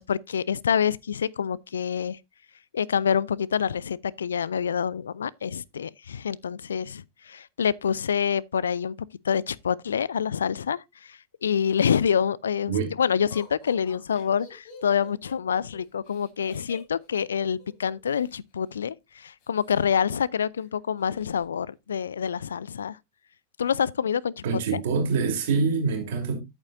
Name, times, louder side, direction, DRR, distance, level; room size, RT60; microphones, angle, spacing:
voice 1, 0.0-2.2 2.7-9.0 9.2-23.0 23.6-24.4 24.7-24.8, left 7 dB, 70° left, 0.4 m, -27 dB
Laughter, 13.3-18.4 19.4-20.3 20.6-20.7 21.0-21.5, left 5 dB, 45° left, 3.4 m, -50 dB
voice 2, 24.4-26.4, right 5 dB, 55° right, 3.2 m, -25 dB
10.5 x 8.8 x 2.6 m
figure-of-eight pair, 90°, 0 cm